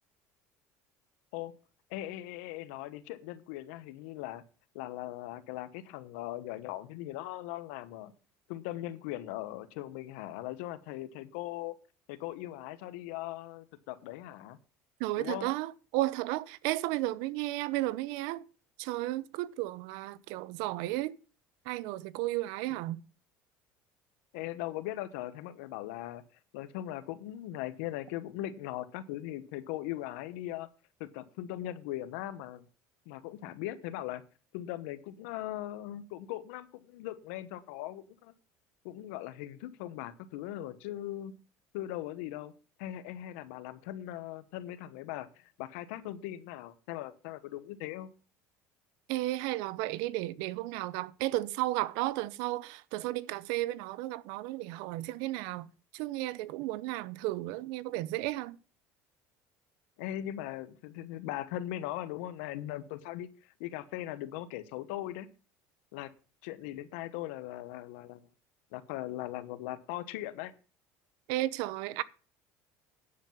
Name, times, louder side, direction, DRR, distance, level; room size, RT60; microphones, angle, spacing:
voice 1, 1.9-4.4 4.7-8.1 8.5-11.8 12.1-14.6 15.2-15.5 22.7-22.8 24.3-26.2 26.5-30.7 31.0-32.6 33.1-34.2 34.5-38.3 38.8-41.4 41.7-42.5 42.8-48.1 60.0-65.3 65.9-66.1 66.4-68.2 68.7-70.5, left 14 dB, 85° left, 1.2 m, -39 dB
voice 2, 15.0-18.4 18.8-21.2 21.6-23.0 49.1-55.7 55.9-58.6 71.3-72.0, right 17 dB, 80° right, 0.7 m, -33 dB
10.0 x 7.6 x 5.6 m
cardioid pair, 120°, 7 cm